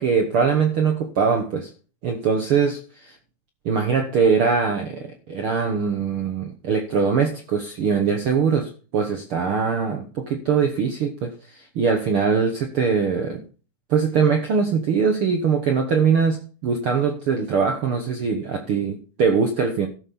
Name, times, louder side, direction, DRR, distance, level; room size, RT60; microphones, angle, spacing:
voice 1, 0.0-1.7 2.0-3.1 3.6-13.4 13.9-19.9, right 6 dB, 75° right, 1.2 m, -22 dB
13.5 x 6.5 x 5.4 m
omnidirectional pair, 4.2 m